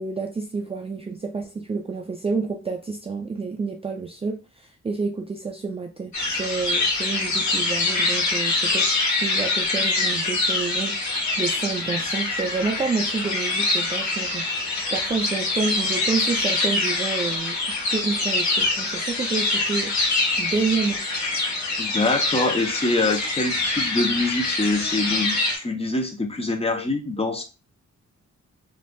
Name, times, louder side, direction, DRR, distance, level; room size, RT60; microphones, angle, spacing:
voice 1, 0.0-17.6 17.9-19.9 20.4-21.0, right 4 dB, 20° right, 1 dB, 0.3 m, -29 dB
sound 1, 6.1-25.6, left 3 dB, 70° left, 1.0 m, -25 dB
voice 2, 21.8-27.4, left 2 dB, 20° left, 3 dB, 0.6 m, -24 dB
3.1 x 2.5 x 2.2 m, 0.30 s
cardioid pair, 105°, 30 cm